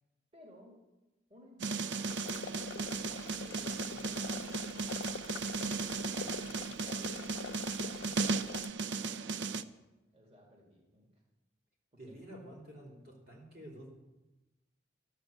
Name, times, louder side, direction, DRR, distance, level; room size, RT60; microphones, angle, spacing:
voice 1, 0.3-0.8 1.3-3.0 3.3-5.4 5.8-7.7 8.0-9.8 10.1-11.2 12.0-12.3, left 1 dB, 35° right, -1 dB, 2.1 m, -58 dB
sound 1, 1.6-9.6, right 4 dB, 75° right, 0.5 m, -36 dB
sound 2, 2.1-8.7, left 7 dB, 75° left, 0.3 m, -45 dB
voice 2, 12.0-13.9, equal, 55° right, -1 dB, 3.6 m, -50 dB
12.0 x 8.3 x 6.5 m, 1.0 s
head